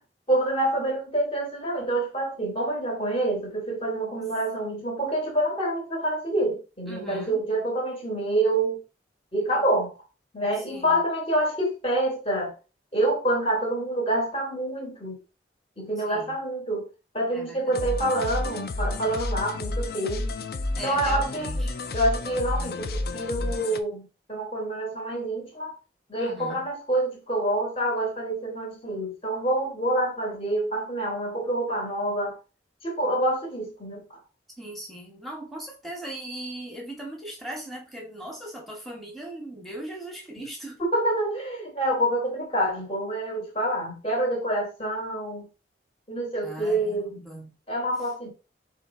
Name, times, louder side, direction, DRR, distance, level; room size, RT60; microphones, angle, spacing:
voice 1, 0.3-8.8 9.3-9.9 10.3-12.5 12.9-15.2 15.8-16.8 17.1-20.3 20.8-21.7 21.9-25.7 26.1-32.4 32.8-34.0 40.8-45.4 46.1-47.2 47.7-48.3, right 1 dB, 30° left, 1.4 m, -27 dB
voice 2, 6.9-7.4 10.6-11.0 16.0-16.4 17.3-17.8 20.8-21.8 26.2-26.7 34.6-40.8 46.4-47.5, right 1 dB, ahead, 1.2 m, -39 dB
sound 1, 17.7-23.8, left 2 dB, 55° left, 0.4 m, -30 dB
4.4 x 3.0 x 3.7 m
head